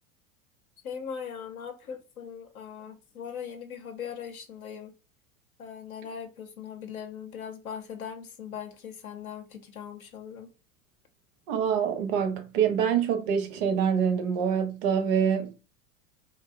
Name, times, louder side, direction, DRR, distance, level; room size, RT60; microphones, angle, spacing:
voice 1, 0.8-4.9 5.6-10.5, left 7 dB, 90° left, 0.6 m, -40 dB
voice 2, 11.5-15.5, right 7 dB, 45° right, 0.5 m, -25 dB
2.5 x 2.1 x 2.4 m
hypercardioid pair, 90°, 42 cm